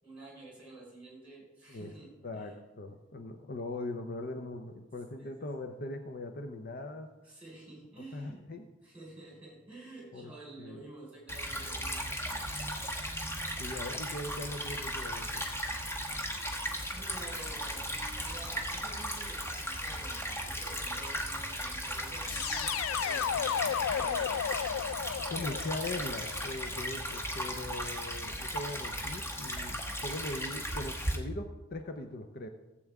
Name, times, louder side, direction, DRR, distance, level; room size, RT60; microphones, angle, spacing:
voice 1, 0.0-2.5 5.1-5.5 7.2-8.4 8.8-12.7 16.9-24.4, right 2 dB, 10° right, -3 dB, 4.4 m, -50 dB
voice 2, 2.2-7.1 8.1-8.7 10.1-10.3 10.6-10.9 13.6-15.4 25.3-32.5, left 2 dB, 50° left, 6 dB, 0.6 m, -40 dB
Stream / Trickle dribble, 11.3-31.2, equal, 10° left, 1.1 m, -36 dB
sound 1, 22.3-27.2, left 8 dB, 85° left, 0.3 m, -34 dB
15.5 x 7.7 x 3.5 m, 1.1 s
head